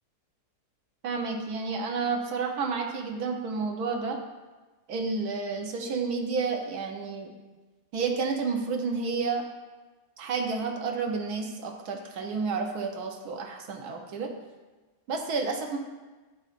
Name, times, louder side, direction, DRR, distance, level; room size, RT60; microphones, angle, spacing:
voice 1, 1.0-4.2 4.9-7.3 7.9-9.4 10.2-14.3 15.1-15.8, right 4 dB, 70° right, 3 dB, 1.2 m, -30 dB
11.0 x 3.9 x 2.5 m, 1.2 s
omnidirectional pair, 1.8 m